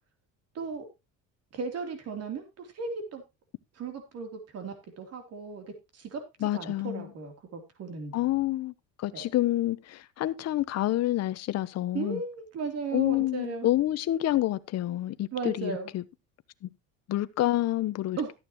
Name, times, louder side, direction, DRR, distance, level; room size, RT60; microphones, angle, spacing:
voice 1, 0.5-0.9 1.5-3.2 3.7-5.6 5.9-6.2 6.5-8.2 9.1-9.2 11.9-13.7 15.3-15.9 18.2-18.3, right 4 dB, 50° right, 3.2 m, -36 dB
voice 2, 6.4-7.1 8.1-8.7 9.0-12.2 12.9-16.0 16.6-16.7 17.1-18.2, left 14 dB, 50° left, 0.9 m, -28 dB
13.5 x 9.3 x 3.0 m
cardioid pair, 130°, 33 cm